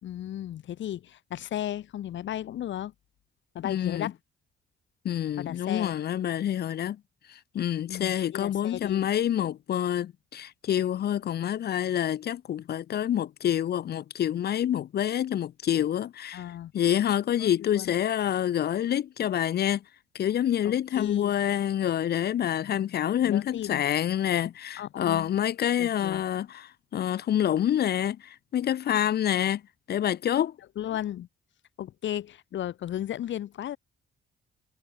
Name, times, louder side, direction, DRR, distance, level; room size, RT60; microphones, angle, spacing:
voice 1, 0.0-2.9 3.6-4.1 5.4-6.0 7.9-9.0 16.3-16.7 17.4-17.9 20.6-21.3 23.3-23.8 24.8-25.3 25.8-26.2 30.8-31.3 31.8-33.8, left 11 dB, 70° left, 1.9 m, -35 dB
voice 2, 3.6-4.1 5.0-7.0 7.3-16.4 16.7-19.8 20.1-29.6 29.9-30.5, left 10 dB, 55° left, 0.6 m, -27 dB
cardioid pair, 90°, 20 cm